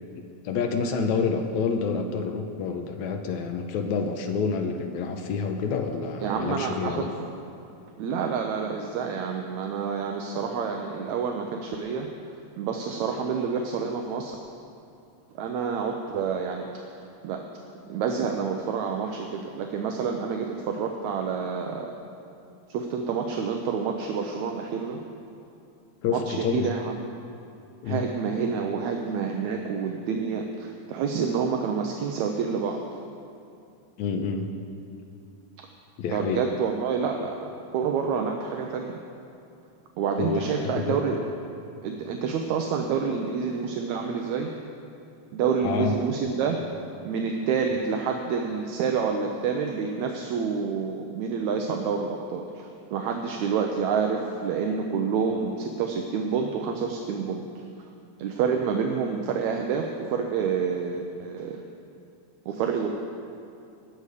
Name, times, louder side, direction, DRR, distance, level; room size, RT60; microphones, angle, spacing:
voice 1, 0.2-7.1 26.0-26.7 27.8-28.1 34.0-34.5 36.0-36.4 40.2-41.0 45.6-46.0, left 5 dB, 75° left, 5 dB, 1.9 m, -28 dB
voice 2, 6.2-7.1 8.0-12.1 12.6-14.4 15.4-16.7 17.0-17.4 17.9-22.0 22.7-25.0 26.1-27.0 27.9-32.8 36.1-39.0 40.0-41.2 41.8-44.5 45.3-46.6 47.0-57.6 58.2-61.6 62.5-62.9, right 6 dB, 75° right, 3 dB, 1.9 m, -28 dB
19.5 x 6.8 x 4.9 m, 2.6 s
omnidirectional pair, 3.6 m